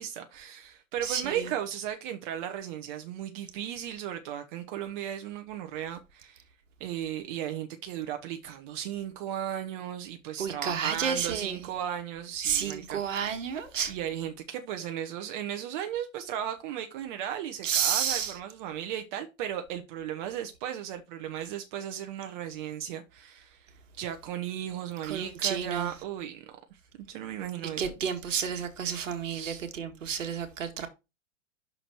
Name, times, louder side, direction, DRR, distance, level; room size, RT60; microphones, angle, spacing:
voice 1, 0.0-6.4 6.8-13.3 13.9-23.7 24.0-26.4 27.0-27.9 29.3-29.6, right 10 dB, 35° right, 1.0 m, -36 dB
voice 2, 1.0-1.5 10.4-11.7 12.4-13.9 17.6-18.3 25.0-25.9 27.8-30.9, right 7 dB, 70° right, 1.9 m, -31 dB
6.2 x 5.0 x 4.7 m
hypercardioid pair, 125°, 40 cm